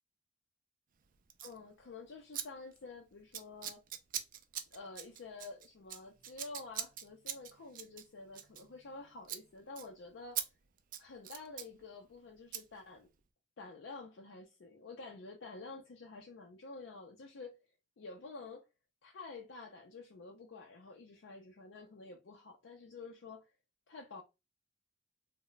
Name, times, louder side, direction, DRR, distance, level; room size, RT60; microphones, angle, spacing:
Scissors, 1.3-1.6 2.3-2.5 2.7-3.0 3.3-9.0 9.2-9.4 9.8-9.9 10.4-10.5 10.8-11.7 12.5-12.6, right 10 dB, 45° right, 0.3 m, -42 dB
voice 1, 1.4-3.8 4.7-10.4 11.0-13.1 13.6-17.6 18.0-18.7 19.0-23.4 23.9-24.2, left 3 dB, 70° left, 0.4 m, -49 dB
2.1 x 2.1 x 3.8 m
head